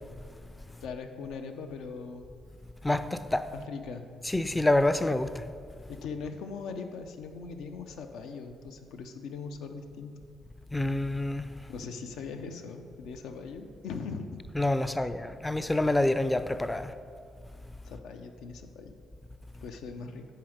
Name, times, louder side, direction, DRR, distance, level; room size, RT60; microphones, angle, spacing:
voice 1, 0.8-2.3 3.5-4.1 5.9-10.1 11.7-14.4 14.8-15.1 17.8-18.9 19.6-20.2, left 5 dB, 85° left, 0.6 m, -40 dB
voice 2, 2.8-3.5 4.3-5.4 10.7-11.5 14.6-16.9, left 1 dB, 10° left, 0.4 m, -27 dB
10.5 x 3.9 x 5.0 m
cardioid pair, 90°, 0 cm